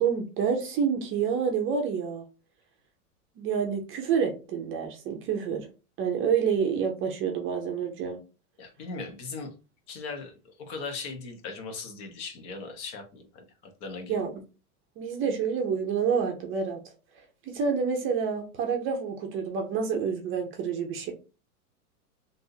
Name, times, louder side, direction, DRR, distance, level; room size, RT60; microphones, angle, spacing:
voice 1, 0.0-2.2 3.4-5.7 6.0-8.2 14.1-14.3 15.0-16.8 17.1-21.1, right 6 dB, 30° right, 3 dB, 0.7 m, -28 dB
voice 2, 8.6-9.5 9.9-10.3 10.6-13.4 13.8-14.1, left 4 dB, 45° left, 4 dB, 1.2 m, -38 dB
3.5 x 2.7 x 2.7 m, 0.32 s
hypercardioid pair, 120°, 45 cm